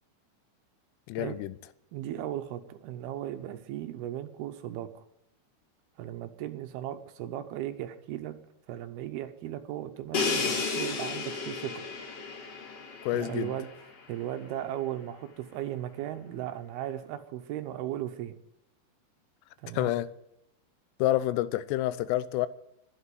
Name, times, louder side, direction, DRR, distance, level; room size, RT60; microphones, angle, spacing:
voice 1, 1.1-1.6 13.0-13.5 19.7-20.1 21.0-22.5, left 15 dB, 85° left, 2.7 m, -28 dB
voice 2, 1.9-5.0 6.0-8.4 8.7-11.8 13.1-13.7 14.1-18.3 19.6-19.9, right 12 dB, 75° right, 2.7 m, -36 dB
Crash cymbal, 10.1-13.9, left 4 dB, 50° left, 2.1 m, -33 dB
11.5 x 8.3 x 9.4 m
omnidirectional pair, 4.8 m